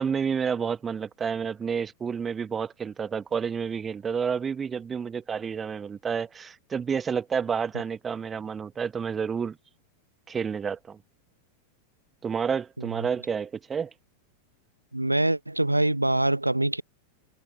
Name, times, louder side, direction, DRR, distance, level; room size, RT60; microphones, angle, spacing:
voice 1, 0.0-9.6 10.3-11.0 12.2-13.9, right 6 dB, 20° right, 1.2 m, -30 dB
voice 2, 14.9-16.8, right 1 dB, 85° right, 1.0 m, -24 dB
figure-of-eight pair, 90°, 0 cm